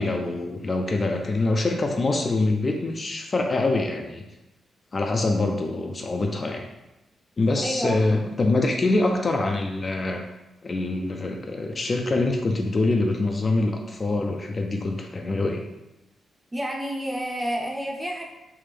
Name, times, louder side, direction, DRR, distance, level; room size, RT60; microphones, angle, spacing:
voice 1, 0.0-4.3 4.9-6.7 7.4-10.2 10.6-15.6, left 2 dB, 35° left, 3 dB, 0.3 m, -24 dB
voice 2, 7.6-8.0 16.5-18.2, equal, 15° right, -1 dB, 0.6 m, -29 dB
3.4 x 2.5 x 3.3 m, 0.97 s
cardioid pair, 95°, 0 cm